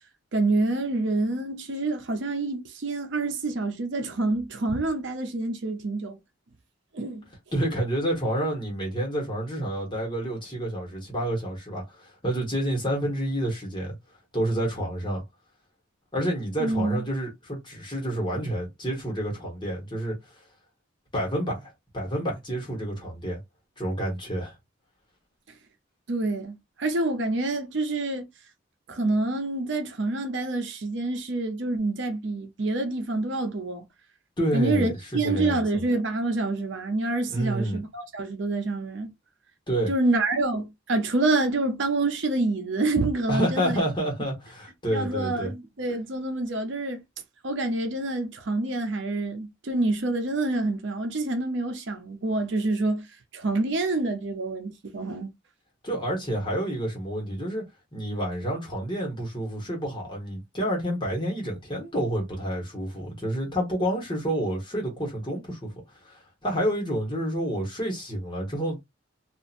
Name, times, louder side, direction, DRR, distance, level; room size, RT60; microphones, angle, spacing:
voice 1, 0.3-6.2 6.9-7.2 16.6-17.0 26.1-28.3 28.9-33.8 34.5-39.1 39.9-43.8 44.9-47.0 47.4-53.1 53.3-55.3, right 2 dB, 65° right, 0.7 m, -27 dB
voice 2, 7.5-14.0 14.3-15.2 16.1-20.2 21.1-23.4 23.8-24.5 34.4-35.8 37.3-37.8 39.7-39.9 43.3-45.5 55.8-57.7 57.9-65.7 66.0-68.8, right 1 dB, 25° left, 1.3 m, -29 dB
2.8 x 2.5 x 2.5 m
head